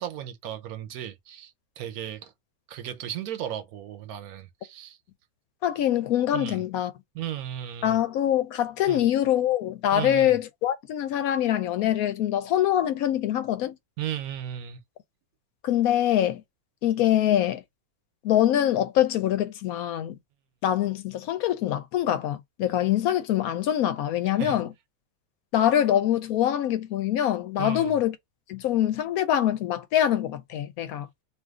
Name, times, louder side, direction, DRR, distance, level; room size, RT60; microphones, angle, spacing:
voice 1, 0.0-2.3 2.7-5.0 6.3-6.6 7.1-8.0 8.9-9.0 9.9-10.4 14.0-14.8 24.4-24.6 27.6-28.0, right 10 dB, 85° right, 1.1 m, -35 dB
voice 2, 5.6-6.9 7.8-13.8 15.6-16.4 16.8-17.6 18.2-20.2 20.6-24.7 25.5-28.2 28.5-31.1, left 11 dB, 80° left, 1.0 m, -24 dB
2.6 x 2.5 x 3.5 m
omnidirectional pair, 1.5 m